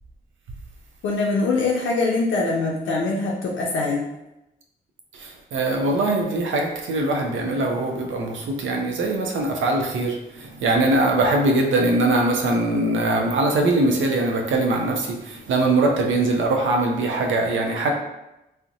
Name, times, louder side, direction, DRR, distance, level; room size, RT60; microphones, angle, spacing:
voice 1, 1.0-4.0, left 3 dB, 75° left, -2 dB, 0.4 m, -23 dB
voice 2, 5.1-17.9, right 2 dB, 75° right, 1 dB, 0.4 m, -22 dB
2.5 x 2.0 x 2.6 m, 0.93 s
supercardioid pair, 40°, 20 cm